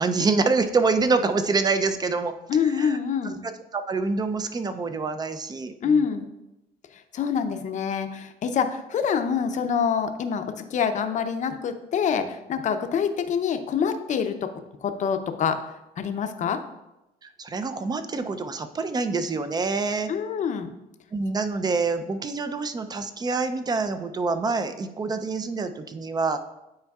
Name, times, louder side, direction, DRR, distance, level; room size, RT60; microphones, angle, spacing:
voice 1, 0.0-2.3 2.6-3.0 3.4-6.1 17.2-20.1 21.1-26.4, right 4 dB, 25° right, 9 dB, 0.5 m, -26 dB
voice 2, 2.5-3.4 5.8-6.3 7.1-14.5 14.8-15.6 16.0-16.6 20.1-20.7, left 7 dB, 45° left, 8 dB, 0.6 m, -26 dB
9.5 x 4.4 x 2.4 m, 0.93 s
cardioid pair, 110°, 17 cm